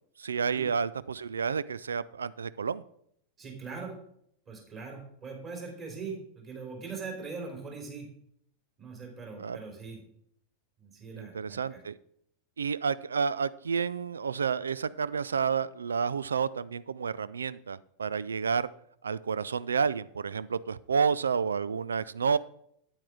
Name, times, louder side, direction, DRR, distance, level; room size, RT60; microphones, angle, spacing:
voice 1, 0.2-2.8 9.4-9.6 11.1-12.0 12.6-18.7 19.0-22.4, right 6 dB, 70° right, 19 dB, 0.3 m, -30 dB
voice 2, 3.4-3.9 4.5-8.1 8.8-10.0 10.8-11.8, right 4 dB, 30° right, 1 dB, 3.5 m, -41 dB
8.8 x 8.8 x 3.7 m, 0.69 s
figure-of-eight pair, 90°, 0 cm